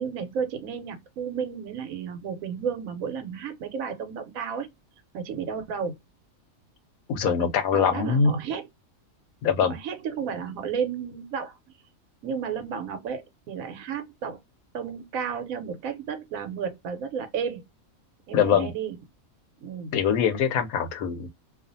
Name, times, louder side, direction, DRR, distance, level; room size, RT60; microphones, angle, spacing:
voice 1, 0.0-4.7 5.1-5.9 7.2-8.7 9.6-11.6 12.2-14.4 14.7-17.6 18.3-18.9 19.6-19.9, right 7 dB, 75° right, 1.1 m, -32 dB
voice 2, 7.1-8.4 9.4-9.7 18.3-18.7 19.9-21.3, left 7 dB, 80° left, 1.0 m, -23 dB
2.4 x 2.4 x 2.6 m
omnidirectional pair, 1.5 m